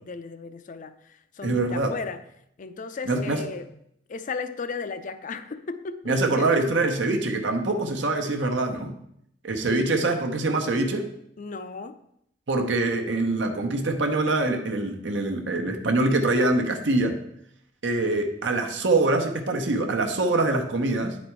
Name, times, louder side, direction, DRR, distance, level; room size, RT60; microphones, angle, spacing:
voice 1, 0.0-2.2 2.6-3.7 4.1-6.8 9.6-9.9 11.4-12.0, left 4 dB, 45° left, 11 dB, 0.5 m, -35 dB
voice 2, 1.4-1.9 3.1-3.4 6.1-8.9 9.4-11.1 12.5-17.2 17.8-21.2, right 2 dB, 75° right, 4 dB, 0.9 m, -24 dB
9.6 x 4.2 x 4.5 m, 0.74 s
head